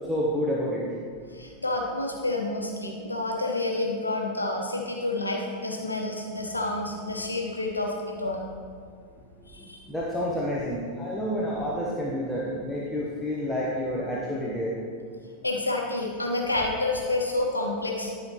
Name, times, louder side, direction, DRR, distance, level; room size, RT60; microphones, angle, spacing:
voice 1, 0.1-0.8 9.9-14.7, equal, 5° left, -6 dB, 1.0 m, -29 dB
voice 2, 1.3-8.4 9.5-9.8 15.4-18.1, left 2 dB, 80° left, 0 dB, 1.1 m, -29 dB
12.0 x 5.5 x 3.0 m, 2.2 s
figure-of-eight pair, 90°, 0 cm